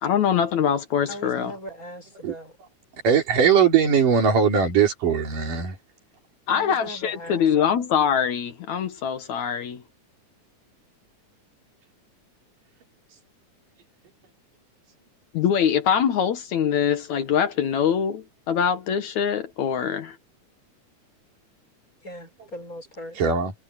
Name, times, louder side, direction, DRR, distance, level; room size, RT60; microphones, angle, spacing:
voice 1, 0.0-1.5 6.5-9.8 15.3-20.2, left 8 dB, 65° left, 2.5 m, -23 dB
voice 2, 1.1-2.5 6.5-7.4 22.0-23.2, left 1 dB, 25° left, 6.0 m, -38 dB
voice 3, 3.0-5.8 23.2-23.5, right 7 dB, 85° right, 5.3 m, -20 dB
omnidirectional pair, 3.7 m